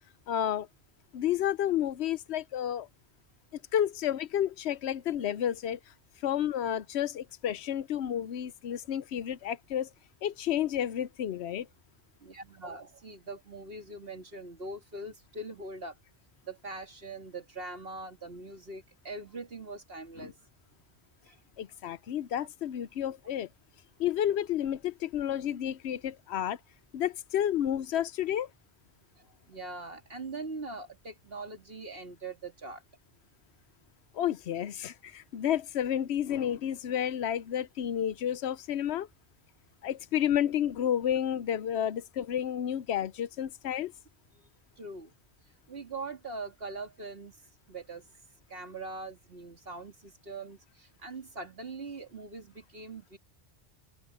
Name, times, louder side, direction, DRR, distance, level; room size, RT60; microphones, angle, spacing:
voice 1, 0.3-0.7 1.1-2.9 3.7-5.8 6.2-9.9 10.2-11.7 20.2-20.3 21.6-23.5 24.0-26.6 26.9-28.5 34.1-39.1 39.8-43.9, left 10 dB, 85° left, 0.9 m, -31 dB
voice 2, 12.2-16.0 16.4-20.3 21.2-21.4 29.2-32.8 44.8-45.1 45.7-47.4 47.7-48.1 48.5-53.2, right 3 dB, 65° right, 2.8 m, -42 dB
open air
omnidirectional pair, 1.1 m